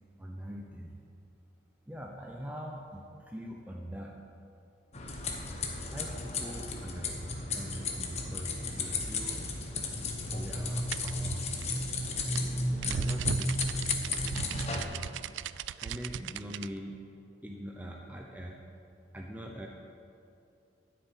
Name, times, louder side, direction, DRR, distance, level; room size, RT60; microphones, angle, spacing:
voice 1, 0.2-0.9 1.9-4.2 5.8-9.4 10.3-11.5 12.8-13.6 14.7-15.0 15.8-17.1 17.4-18.6 19.1-19.7, equal, 10° right, -1 dB, 0.8 m, -42 dB
sound 1, 4.9-14.8, left 2 dB, 35° left, 1.3 m, -34 dB
sound 2, 10.9-16.7, right 8 dB, 75° right, 0.3 m, -38 dB
13.0 x 6.6 x 9.2 m, 2.5 s
head